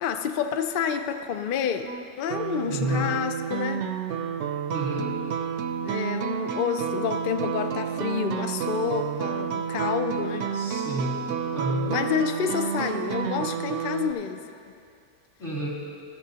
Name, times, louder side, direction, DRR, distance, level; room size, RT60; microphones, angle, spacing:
voice 1, 0.0-3.9 5.8-10.5 11.9-14.4, left 8 dB, 70° left, 7 dB, 0.5 m, -29 dB
sound 1, 1.9-14.1, right 7 dB, 70° right, 0.8 m, -30 dB
voice 2, 2.7-3.1 4.7-5.1 10.5-11.2 11.5-11.9 15.4-15.7, equal, 50° left, -7 dB, 2.8 m, -29 dB
15.0 x 13.5 x 2.8 m, 2.5 s
omnidirectional pair, 1.5 m